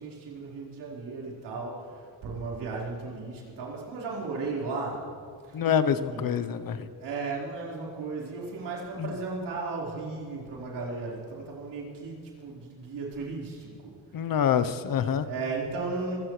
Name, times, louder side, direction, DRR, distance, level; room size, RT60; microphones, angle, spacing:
voice 1, 0.0-5.1 5.4-5.6 6.1-6.4 7.0-13.7 14.1-14.3 15.2-16.2, right 3 dB, 75° right, -4 dB, 4.6 m, -35 dB
voice 2, 5.5-6.9 9.0-9.1 14.1-15.3, left 8 dB, 55° left, 12 dB, 0.9 m, -26 dB
24.5 x 17.0 x 3.3 m, 2.3 s
cardioid pair, 80°, 41 cm